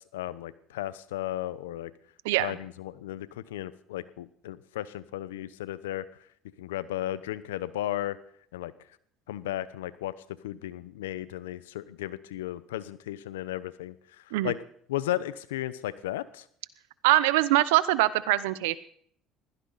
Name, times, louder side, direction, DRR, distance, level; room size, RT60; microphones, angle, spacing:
voice 1, 0.0-1.9 2.4-6.1 6.6-8.2 8.5-8.7 9.3-10.1 10.4-13.9 14.4-14.6 14.9-16.4, left 13 dB, 90° left, 16 dB, 0.8 m, -34 dB
voice 2, 17.0-18.8, right 17 dB, 80° right, 17 dB, 0.8 m, -23 dB
21.0 x 16.0 x 4.1 m, 0.63 s
hypercardioid pair, 75°, 0 cm